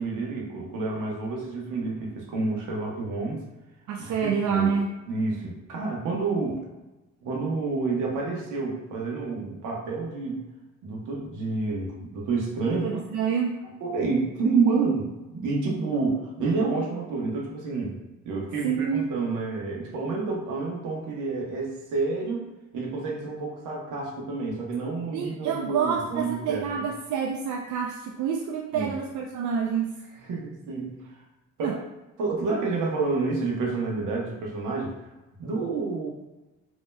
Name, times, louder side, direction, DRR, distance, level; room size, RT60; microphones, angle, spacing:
voice 1, 0.0-3.4 4.0-4.8 5.1-6.6 7.2-10.4 10.8-13.0 13.8-18.0 18.2-22.5 22.7-26.9 28.7-29.0 30.1-30.9 31.6-31.8 32.2-34.9 35.4-36.1, right 4 dB, 90° right, -2 dB, 1.1 m, -29 dB
voice 2, 3.9-4.9 12.7-13.6 18.6-19.0 25.1-29.9 31.6-31.7, right 7 dB, 70° right, 1 dB, 0.5 m, -27 dB
5.3 x 2.9 x 2.2 m, 1.1 s
cardioid pair, 90°, 30 cm